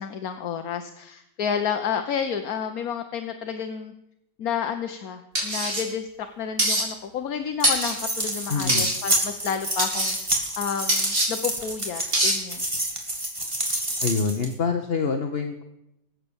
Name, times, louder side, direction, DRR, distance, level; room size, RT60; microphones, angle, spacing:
voice 1, 0.0-3.9 4.4-12.6, left 7 dB, 55° left, 7 dB, 1.3 m, -30 dB
sound 1, 5.4-5.8 6.6-6.8 7.6-8.0 8.7-8.9 9.8-10.1 10.9-11.3 12.1-12.4, right 1 dB, 45° right, 4.2 m, -23 dB
sound 2, 7.6-14.5, right 1 dB, 15° right, 2.5 m, -28 dB
voice 2, 8.5-8.9 14.0-15.6, left 5 dB, 40° left, 5 dB, 1.0 m, -26 dB
20.5 x 8.6 x 7.0 m, 0.85 s
omnidirectional pair, 2.1 m